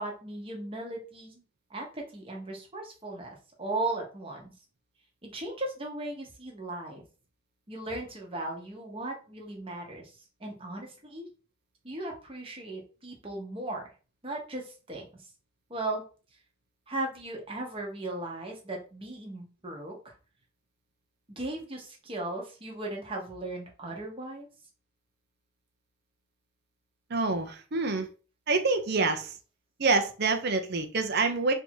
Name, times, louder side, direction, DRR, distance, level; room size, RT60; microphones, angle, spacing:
voice 1, 0.0-1.4 1.7-4.5 5.2-7.0 7.7-11.3 11.8-13.8 14.2-15.2 15.7-16.0 16.9-20.1 21.3-24.5, right 2 dB, 25° right, 1.1 m, -37 dB
voice 2, 27.1-28.1 28.5-29.4 29.8-31.5, right 3 dB, 50° right, 0.7 m, -26 dB
3.5 x 2.8 x 4.4 m
head